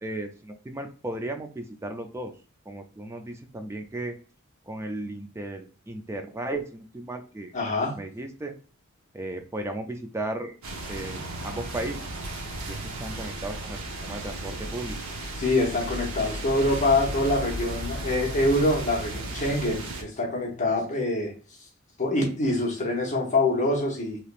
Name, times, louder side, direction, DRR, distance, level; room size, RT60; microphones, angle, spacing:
voice 1, 0.0-2.3 2.7-4.1 4.7-7.5 7.9-8.6 9.1-10.6 10.9-12.1 12.7-15.0, right 2 dB, 15° right, 5 dB, 0.3 m, -35 dB
voice 2, 7.5-8.0 15.4-21.3 22.0-24.2, left 2 dB, 35° left, -1 dB, 0.9 m, -25 dB
sound 1, 10.6-20.0, right 1 dB, 80° right, 0.8 m, -35 dB
3.3 x 2.9 x 2.4 m, 0.37 s
head